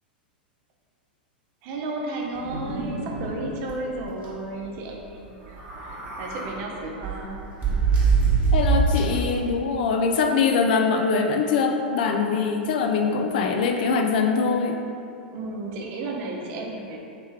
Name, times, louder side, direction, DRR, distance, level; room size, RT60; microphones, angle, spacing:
voice 1, 1.6-7.5 15.3-17.0, right 2 dB, 45° right, -1 dB, 0.6 m, -33 dB
sound 1, 2.3-3.3 3.7-3.8 4.1-4.3 5.5-6.5 7.0-9.3, right 4 dB, 25° right, 1.1 m, -23 dB
voice 2, 8.5-14.8, left 5 dB, 65° left, 4 dB, 0.4 m, -23 dB
3.3 x 3.2 x 3.2 m, 2.6 s
hypercardioid pair, 95°, 5 cm